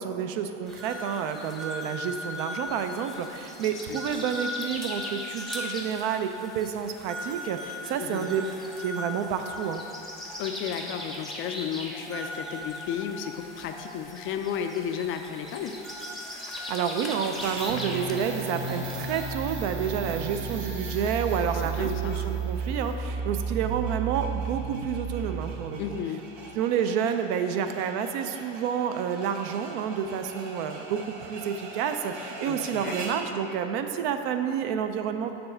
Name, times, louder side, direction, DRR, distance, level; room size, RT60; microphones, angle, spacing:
voice 1, 0.0-8.4 8.8-9.8 16.7-25.8 26.5-35.3, right 8 dB, 60° right, 7 dB, 0.5 m, -29 dB
sound 1, 0.7-19.3, left 1 dB, ahead, 0.7 m, -38 dB
voice 2, 3.9-4.3 8.0-8.3 10.4-15.8 21.5-22.5 25.8-26.3 32.4-33.0, left 8 dB, 35° left, 6 dB, 0.4 m, -33 dB
sound 2, 17.2-33.3, right 2 dB, 80° right, 1.1 m, -45 dB
sound 3, 17.6-26.0, right 5 dB, 35° right, 1.0 m, -33 dB
6.8 x 3.3 x 5.6 m, 2.8 s
supercardioid pair, 110°, 34 cm